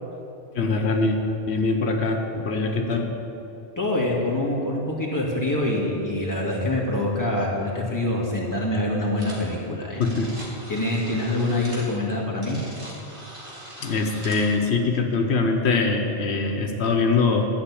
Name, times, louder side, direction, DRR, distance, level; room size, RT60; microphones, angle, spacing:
voice 1, 0.5-1.2 1.5-3.1 10.0-10.3 13.8-17.5, left 3 dB, 90° left, 4 dB, 1.2 m, -23 dB
voice 2, 3.8-10.0 10.7-12.6, left 1 dB, 20° left, -4 dB, 2.0 m, -25 dB
sound 1, 9.2-9.5 9.8-14.6, right 1 dB, 55° right, 2.4 m, -41 dB
12.0 x 6.1 x 8.4 m, 2.9 s
omnidirectional pair, 1.1 m